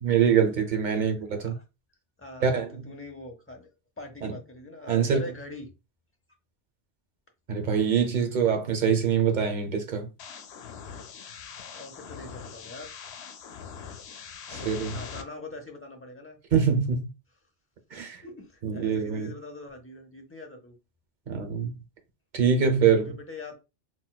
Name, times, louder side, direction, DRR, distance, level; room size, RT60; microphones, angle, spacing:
voice 1, 0.0-1.5 2.4-2.8 4.2-4.3 4.9-5.2 7.5-10.1 14.5-15.0 16.5-17.1 17.9-18.2 18.6-19.3 21.3-21.7 22.3-23.1, right 7 dB, 50° right, 0.8 m, -24 dB
voice 2, 0.5-1.5 2.2-3.7 4.0-5.7 11.7-12.9 14.5-16.4 18.2-20.8 23.0-23.6, left 2 dB, 15° left, 0.6 m, -43 dB
sound 1, 10.2-15.2, left 7 dB, 90° left, 0.8 m, -42 dB
4.1 x 2.2 x 2.2 m
omnidirectional pair, 1.1 m